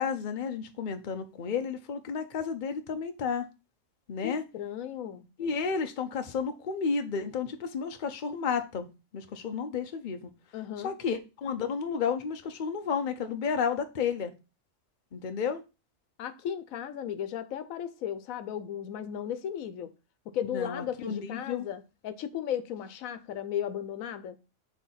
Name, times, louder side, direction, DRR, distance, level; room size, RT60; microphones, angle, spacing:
voice 1, 0.0-3.5 4.1-4.4 5.4-8.9 9.1-10.2 10.8-14.3 15.1-15.6 20.5-21.6, left 6 dB, 45° left, 0.8 m, -32 dB
voice 2, 4.2-5.2 10.5-10.9 16.2-19.9 20.3-24.4, left 9 dB, 90° left, 1.1 m, -35 dB
6.4 x 3.4 x 5.6 m
omnidirectional pair, 1.4 m